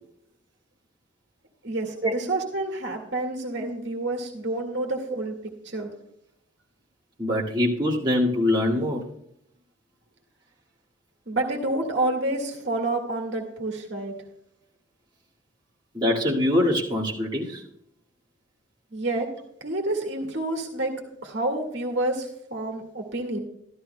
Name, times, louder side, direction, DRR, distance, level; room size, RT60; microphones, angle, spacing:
voice 1, 1.6-5.3 5.6-5.9 11.3-14.1 18.9-19.3 19.6-20.9 21.2-23.4, right 2 dB, 65° right, 1 dB, 1.8 m, -28 dB
voice 2, 7.2-9.1 15.9-17.6, left 1 dB, 25° right, -6 dB, 2.0 m, -23 dB
13.5 x 13.0 x 2.2 m, 0.73 s
head